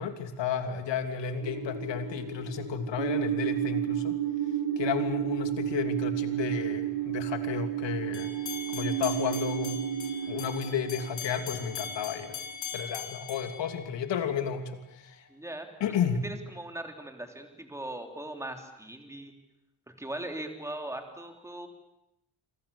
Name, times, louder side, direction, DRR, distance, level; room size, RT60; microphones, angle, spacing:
voice 1, 0.0-4.2 4.8-8.3 8.7-9.8 10.3-12.4 12.7-15.2 15.8-16.2, left 7 dB, 85° left, 6 dB, 3.2 m, -32 dB
sound 1, 1.4-12.3, right 10 dB, 80° right, 6.2 m, -32 dB
sound 2, 8.1-14.4, left 7 dB, 45° left, 5.8 m, -40 dB
voice 2, 15.3-15.7 16.2-19.3 19.9-21.7, right 1 dB, 5° right, 4 dB, 3.3 m, -39 dB
28.0 x 25.5 x 7.1 m, 0.85 s
wide cardioid pair, 160°, 42 cm